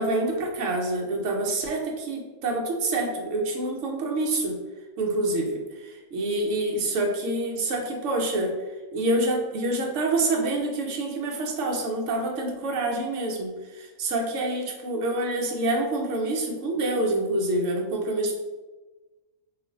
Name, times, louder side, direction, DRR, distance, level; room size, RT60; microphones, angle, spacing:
voice 1, 0.0-4.6 5.0-5.6 6.1-8.5 8.9-13.5 14.0-18.3, right 2 dB, 65° right, 1 dB, 0.9 m, -26 dB
2.5 x 2.4 x 3.8 m, 1.2 s
omnidirectional pair, 1.5 m